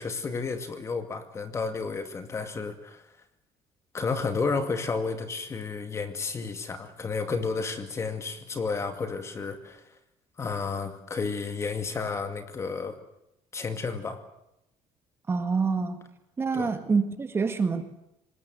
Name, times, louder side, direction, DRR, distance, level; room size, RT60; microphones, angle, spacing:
voice 1, 0.0-3.1 3.9-9.8 10.4-13.0 13.5-14.2 16.5-16.7, left 4 dB, 25° left, 8 dB, 2.3 m, -32 dB
voice 2, 15.3-16.0 16.4-17.8, right 4 dB, 20° right, 8 dB, 1.8 m, -26 dB
25.5 x 20.0 x 7.9 m, 0.84 s
cardioid pair, 155°, 11 cm